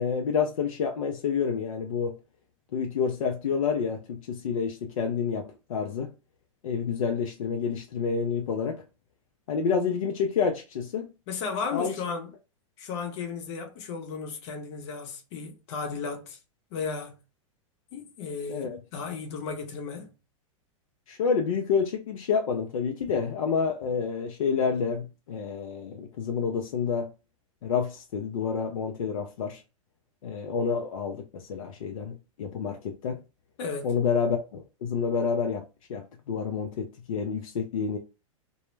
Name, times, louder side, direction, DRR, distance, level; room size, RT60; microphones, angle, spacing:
voice 1, 0.0-2.1 2.7-6.1 6.6-8.8 9.5-11.1 11.7-11.9 18.5-18.8 21.1-27.1 27.6-29.6 30.2-33.2 33.8-35.6 35.9-38.0, left 6 dB, 85° left, 0.4 m, -28 dB
voice 2, 11.3-12.3 12.8-16.4 16.7-17.1 17.9-20.1 33.6-33.9, left 5 dB, 55° left, 0.7 m, -34 dB
2.1 x 2.0 x 3.1 m
hypercardioid pair, 115°, 17 cm